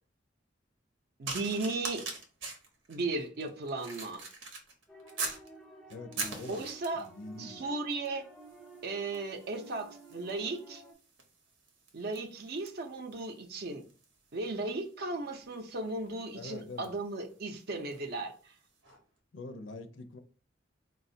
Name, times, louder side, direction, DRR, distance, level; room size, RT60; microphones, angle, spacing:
voice 1, 1.2-2.0 2.9-4.2 6.5-7.1 7.4-8.3 8.8-10.8 11.9-13.8 14.3-18.5, right 3 dB, 55° right, 0.5 m, -36 dB
sound 1, 1.3-5.5 5.9-7.2 7.9-8.2 8.4-18.1 18.8-19.0, right 3 dB, 85° right, 0.8 m, -44 dB
sound 2, 4.9-10.9, right 1 dB, ahead, 0.4 m, -53 dB
voice 2, 5.9-6.6 6.9-7.7 16.4-16.9 19.3-20.2, left 2 dB, 75° left, 0.5 m, -44 dB
4.0 x 2.3 x 2.6 m
head